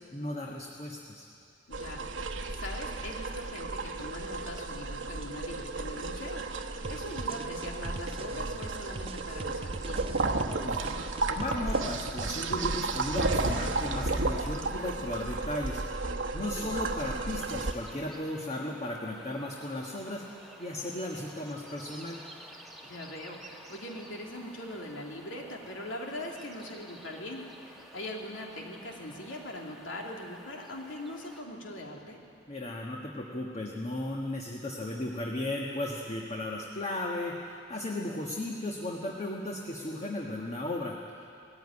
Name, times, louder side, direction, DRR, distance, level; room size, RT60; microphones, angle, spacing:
voice 1, 0.1-1.3 10.6-10.9 11.3-15.8 16.3-20.2 20.6-22.2 32.5-41.3, left 1 dB, 35° left, -1 dB, 1.4 m, -35 dB
voice 2, 1.7-10.2 16.6-16.7 22.8-32.2, left 1 dB, 80° left, 0 dB, 2.8 m, -41 dB
sound 1, 1.7-17.7, right 3 dB, 75° right, 1.1 m, -33 dB
sound 2, 6.8-14.2, right 3 dB, 30° right, 0.4 m, -43 dB
sound 3, 17.0-31.4, right 1 dB, ahead, 1.5 m, -52 dB
19.0 x 15.0 x 9.8 m, 2.5 s
head